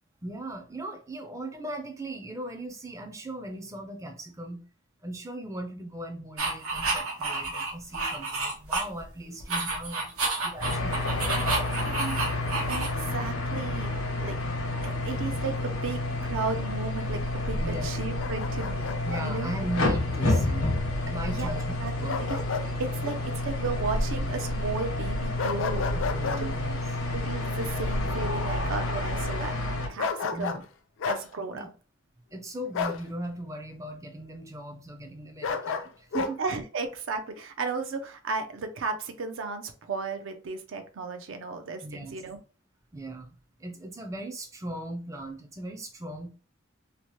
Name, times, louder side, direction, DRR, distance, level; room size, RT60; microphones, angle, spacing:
voice 1, 0.2-4.6 5.0-10.1 10.4-12.3 17.6-17.9 19.0-22.3 26.1-26.8 30.2-30.6 31.5-31.7 32.3-36.4 41.8-42.2 42.9-46.3, right 1 dB, 15° right, 4 dB, 0.4 m, -38 dB
sound 1, 6.4-9.1 9.4-13.2, right 3 dB, 90° right, 0.8 m, -30 dB
sound 2, 10.6-29.9, left 1 dB, 85° left, 0.8 m, -29 dB
voice 2, 12.6-13.9 14.2-14.4 14.8-19.5 21.3-21.5 21.8-22.4 22.8-23.2 23.4-25.8 27.1-29.6 29.9-30.6 31.0-31.7 36.4-42.4, right 4 dB, 70° right, 6 dB, 0.5 m, -34 dB
Bark, 18.2-19.3 22.1-22.7 23.0-23.2 25.4-26.4 30.0-30.7 31.0-31.2 32.7-33.0 35.4-36.3, left 5 dB, 65° left, 0.3 m, -31 dB
2.8 x 2.1 x 3.0 m, 0.35 s
head